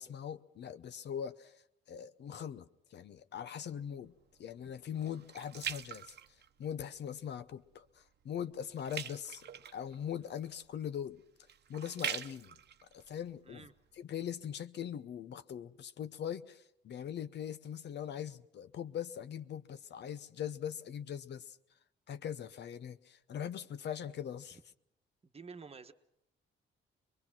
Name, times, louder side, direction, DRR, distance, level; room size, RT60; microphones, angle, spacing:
voice 1, 0.0-1.5 1.9-2.6 2.9-4.1 4.4-6.1 6.6-11.2 11.7-12.6 12.9-13.7 13.9-21.6 22.1-24.6, left 9 dB, 60° left, 0.8 m, -41 dB
sound 1, 3.7-7.0 7.4-7.8 8.1-14.0 14.6-14.7, right 9 dB, 60° right, 0.9 m, -44 dB
voice 2, 25.2-25.9, right 5 dB, 30° right, 1.3 m, -50 dB
23.5 x 22.5 x 6.0 m
cardioid pair, 90°, 20 cm